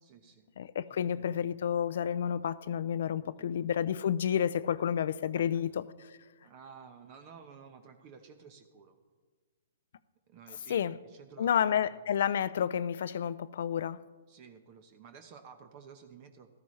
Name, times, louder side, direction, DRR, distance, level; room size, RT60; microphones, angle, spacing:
voice 1, 0.0-0.5 1.0-1.4 3.2-3.7 4.7-4.8 6.4-9.0 10.3-11.5 11.9-12.0 14.3-16.5, right 6 dB, 40° right, 1.0 m, -53 dB
voice 2, 0.6-6.2 10.7-11.0 11.4-14.0, left 9 dB, 65° left, 0.4 m, -30 dB
14.0 x 13.5 x 3.2 m
hypercardioid pair, 140°, 0 cm